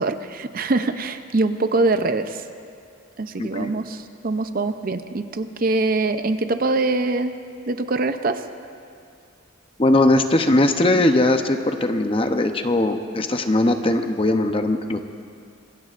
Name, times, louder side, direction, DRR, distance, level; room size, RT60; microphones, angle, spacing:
voice 1, 0.0-2.4 3.2-7.3 7.7-8.4, right 3 dB, 45° right, 9 dB, 0.6 m, -23 dB
voice 2, 3.4-3.7 9.8-15.0, left 2 dB, 25° left, 6 dB, 0.7 m, -20 dB
25.5 x 22.0 x 2.5 m, 2.4 s
head